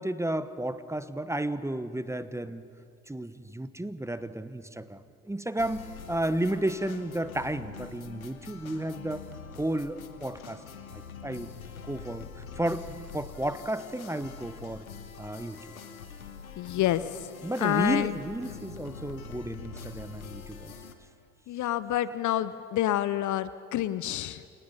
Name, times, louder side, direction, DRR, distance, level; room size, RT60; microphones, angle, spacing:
voice 1, 0.0-2.6 3.1-9.3 9.6-10.6 10.9-11.5 11.9-14.9 15.2-15.7 17.4-20.7, right 1 dB, 5° right, 13 dB, 1.2 m, -33 dB
sound 1, 5.6-20.9, left 6 dB, 85° left, 1.5 m, -45 dB
voice 2, 16.6-17.0 17.6-18.1 21.5-24.4, left 13 dB, 45° left, 15 dB, 0.9 m, -28 dB
29.0 x 24.0 x 5.5 m, 2.3 s
figure-of-eight pair, 55°, 41 cm